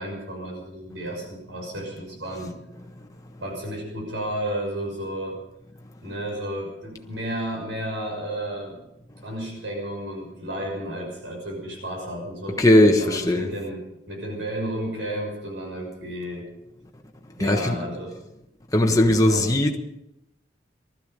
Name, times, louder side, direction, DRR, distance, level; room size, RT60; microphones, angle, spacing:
voice 1, 0.0-2.5 3.4-5.4 6.0-8.8 9.2-12.6 13.0-16.5 17.3-18.1 18.9-19.5, right 1 dB, 90° right, 6.3 m, -32 dB
voice 2, 12.6-13.5 17.4-17.8 18.7-19.8, left 1 dB, 20° left, 1.2 m, -18 dB
20.0 x 13.5 x 5.2 m
head